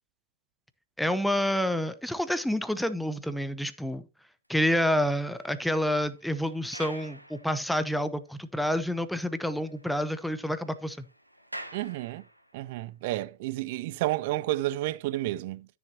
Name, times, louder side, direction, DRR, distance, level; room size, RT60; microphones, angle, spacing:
voice 1, 1.0-4.0 4.5-11.0, equal, ahead, 0.8 m, -28 dB
sound 1, 4.6-8.1 8.6-8.7 9.1-9.2 9.4-12.7, right 1 dB, 90° right, 1.0 m, -48 dB
voice 2, 11.7-12.2 12.5-15.7, right 16 dB, 50° right, 0.5 m, -31 dB
12.5 x 7.0 x 2.8 m
figure-of-eight pair, 90°, 0 cm